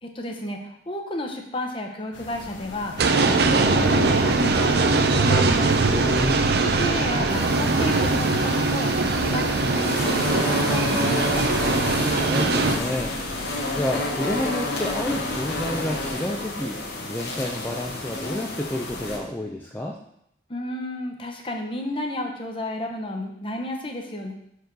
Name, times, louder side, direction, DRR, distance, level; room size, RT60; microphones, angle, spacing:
voice 1, 0.0-5.8 6.6-11.4 20.5-24.3, left 1 dB, 30° left, 2 dB, 0.9 m, -32 dB
sound 1, 2.1-16.1, left 1 dB, 90° left, 1.0 m, -38 dB
sound 2, 3.0-12.8, right 3 dB, 60° right, 0.6 m, -21 dB
voice 2, 5.9-6.4 12.1-13.2 13.7-20.0, left 1 dB, 10° left, -1 dB, 0.4 m, -30 dB
sound 3, 7.3-19.2, left 2 dB, 60° left, 1.3 m, -30 dB
6.2 x 4.7 x 5.2 m, 0.75 s
head